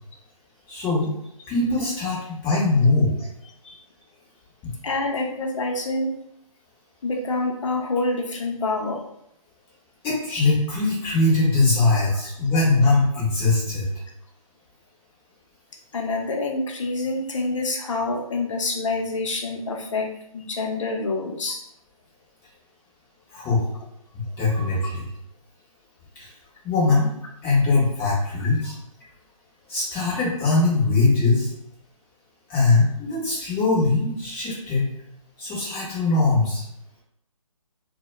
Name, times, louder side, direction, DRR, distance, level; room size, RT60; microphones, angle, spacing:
voice 1, 0.7-1.1 1.5-3.3 4.6-4.7 10.0-13.9 23.3-23.7 24.4-25.1 26.2-26.3 26.6-27.1 27.4-28.8 29.7-31.5 32.5-34.8 35.4-36.6, left 3 dB, 10° left, -7 dB, 0.7 m, -21 dB
voice 2, 4.8-6.1 7.0-9.0 15.9-20.1 20.3-21.6, left 2 dB, 60° left, 1 dB, 0.6 m, -26 dB
2.1 x 2.1 x 3.0 m, 0.74 s
figure-of-eight pair, 150°, 18 cm